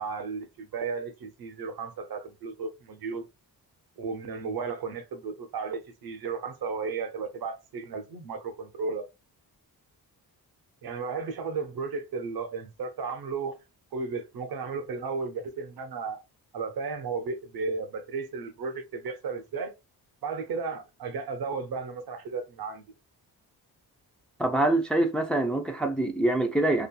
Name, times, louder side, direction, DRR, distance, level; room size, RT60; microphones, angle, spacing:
voice 1, 0.0-3.3 4.0-9.1 10.8-13.6 13.9-16.2 16.5-19.7 20.2-22.8, right 4 dB, 70° right, 0.7 m, -34 dB
voice 2, 24.4-26.9, right 2 dB, 5° left, 0.4 m, -25 dB
2.8 x 2.4 x 2.2 m
cardioid pair, 95°, 38 cm